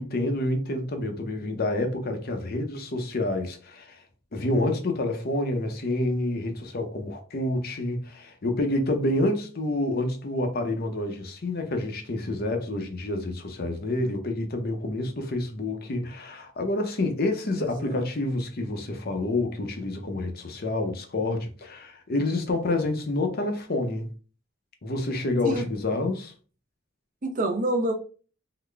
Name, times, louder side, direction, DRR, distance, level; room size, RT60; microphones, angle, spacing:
voice 1, 0.0-4.0 4.3-24.1 24.8-26.3, left 2 dB, 50° left, 0.6 m, -28 dB
voice 2, 17.6-17.9 25.4-25.7 27.2-27.9, right 1 dB, 40° right, 0.6 m, -27 dB
3.8 x 2.1 x 3.3 m
head